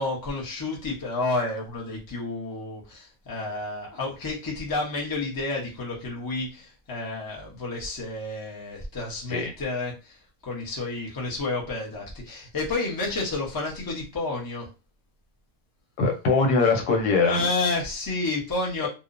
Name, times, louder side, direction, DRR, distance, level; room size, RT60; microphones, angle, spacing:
voice 1, 0.0-14.7 17.2-18.9, left 2 dB, 25° left, -3 dB, 0.5 m, -30 dB
voice 2, 16.0-17.5, left 4 dB, 90° left, 2 dB, 1.2 m, -22 dB
2.8 x 2.0 x 2.5 m, 0.30 s
omnidirectional pair, 1.6 m